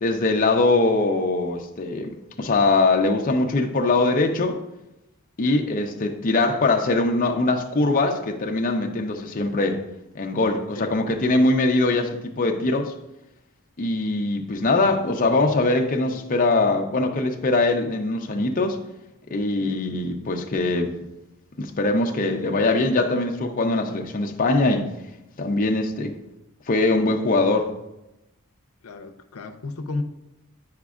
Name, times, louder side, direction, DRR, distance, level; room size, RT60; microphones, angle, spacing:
voice 1, 0.0-2.1 2.4-4.6 5.4-9.8 10.1-12.9 13.8-18.8 19.3-20.9 21.6-24.9 25.4-26.1 26.7-27.7, left 2 dB, 40° left, 3 dB, 0.6 m, -22 dB
voice 2, 28.8-30.0, left 3 dB, 85° left, 7 dB, 0.6 m, -33 dB
9.4 x 5.0 x 2.4 m, 0.91 s
head